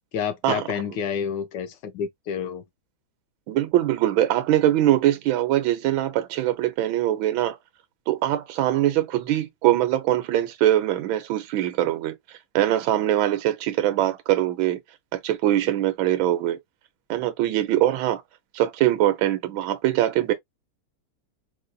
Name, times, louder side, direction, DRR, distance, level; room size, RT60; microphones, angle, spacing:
voice 1, 0.1-2.6, left 7 dB, 75° left, 1.2 m, -29 dB
voice 2, 3.5-7.6 8.1-12.1 12.5-14.8 15.1-16.6 17.1-18.2 18.5-20.3, right 13 dB, 90° right, 1.4 m, -22 dB
4.1 x 2.6 x 2.2 m
omnidirectional pair, 2.2 m